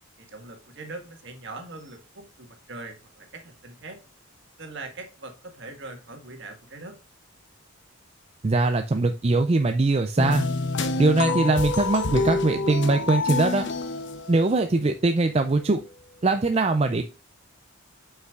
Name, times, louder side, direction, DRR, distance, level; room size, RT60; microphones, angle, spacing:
voice 1, 0.2-4.0 4.6-7.0, right 2 dB, 55° right, 4 dB, 1.7 m, -41 dB
voice 2, 8.4-10.5 11.0-13.7 14.3-15.8 16.2-17.0, right 3 dB, 30° right, 7 dB, 0.4 m, -22 dB
sound 1, 10.2-14.8, left 3 dB, 55° left, 0.8 m, -27 dB
7.9 x 5.6 x 2.4 m, 0.32 s
head